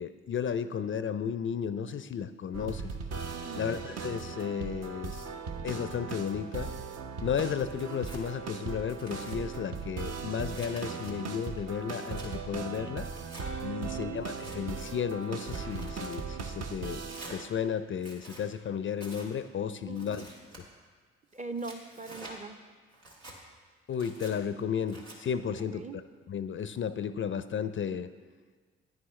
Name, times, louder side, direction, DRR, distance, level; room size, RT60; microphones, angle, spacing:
voice 1, 0.0-2.9 3.5-5.3 5.6-6.7 7.2-13.1 13.6-17.0 17.3-20.3 23.9-25.8 26.3-28.1, left 7 dB, 40° left, 12 dB, 0.5 m, -33 dB
sound 1, 2.5-17.5, right 5 dB, 55° right, 0.8 m, -38 dB
voice 2, 3.4-3.8 13.9-14.2 19.9-20.2 21.3-22.6 25.7-26.0, right 3 dB, 25° right, 8 dB, 0.6 m, -41 dB
Tearing, 7.7-8.2 8.8-9.4 10.0-11.1 11.6-12.3 13.1-13.5 14.2-14.6 15.2-16.2 17.0-17.4 17.9-18.4 19.0-19.3 19.9-20.6 21.3-22.3 22.9-23.4 23.9-24.3 24.9-25.2, right 1 dB, 85° right, 1.5 m, -48 dB
10.0 x 9.5 x 3.2 m, 1.5 s
hypercardioid pair, 45°, 32 cm